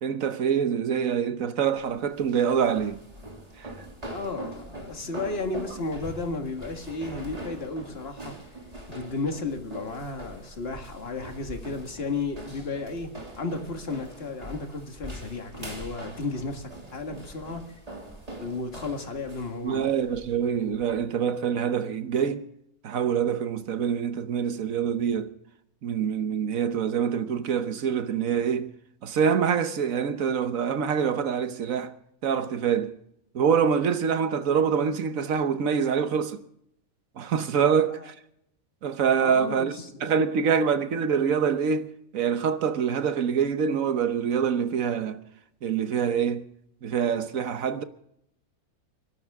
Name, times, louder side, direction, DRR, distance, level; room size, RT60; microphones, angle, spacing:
voice 1, 0.0-3.0 3.6-3.7 19.6-22.5 22.8-25.3 25.8-28.7 29.0-31.9 32.2-32.9 33.3-36.4 37.2-38.1 38.8-39.7 40.0-45.2 45.6-46.4 46.8-47.8, right 7 dB, 65° right, 1.4 m, -25 dB
sound 1, 1.8-21.0, right 1 dB, 25° right, 3.1 m, -43 dB
voice 2, 4.1-8.3 8.9-13.1 13.4-17.6 18.4-20.0 37.9-38.1 39.2-40.5, left 3 dB, 45° left, 2.0 m, -33 dB
29.5 x 12.5 x 3.6 m
omnidirectional pair, 1.5 m